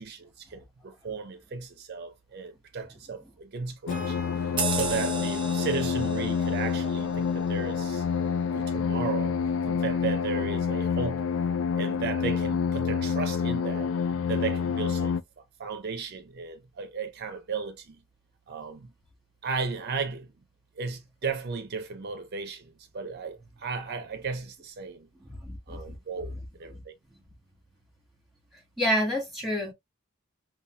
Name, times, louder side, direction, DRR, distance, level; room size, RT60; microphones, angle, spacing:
voice 1, 0.0-4.2 4.7-8.1 8.5-9.3 9.7-11.2 11.8-13.9 14.3-18.0 18.5-18.9 19.4-20.3 20.8-25.1 25.7-26.3 26.6-26.9, right 4 dB, 50° right, 0.5 m, -35 dB
sound 1, 3.9-15.2, left 6 dB, 70° left, 0.4 m, -28 dB
Acoustic guitar / Strum, 3.9-7.3, right 1 dB, 45° left, 1.9 m, -47 dB
sound 2, 4.6-9.5 10.0-10.1, right 4 dB, 25° right, 0.8 m, -36 dB
voice 2, 25.1-26.0 26.3-26.4 26.7-26.8 28.8-29.7, equal, ahead, 1.8 m, -29 dB
5.4 x 2.3 x 2.3 m
head